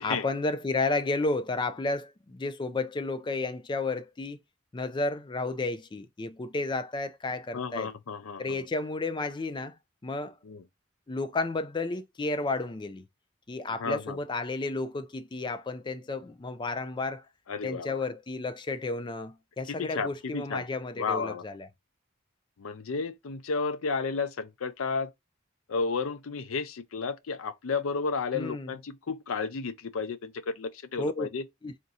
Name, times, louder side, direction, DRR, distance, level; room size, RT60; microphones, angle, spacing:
voice 1, 0.0-4.4 4.7-7.9 8.4-9.8 10.0-10.3 11.1-13.0 13.5-17.2 17.6-21.7 28.3-28.7 31.0-31.3 31.6-31.7, left 3 dB, 20° left, 0.4 m, -32 dB
voice 2, 7.5-8.6 10.4-10.6 13.7-14.2 17.5-18.0 19.7-20.7 21.0-21.4 22.6-25.1 25.7-31.4, left 4 dB, 85° left, 0.5 m, -32 dB
3.6 x 2.6 x 4.0 m
head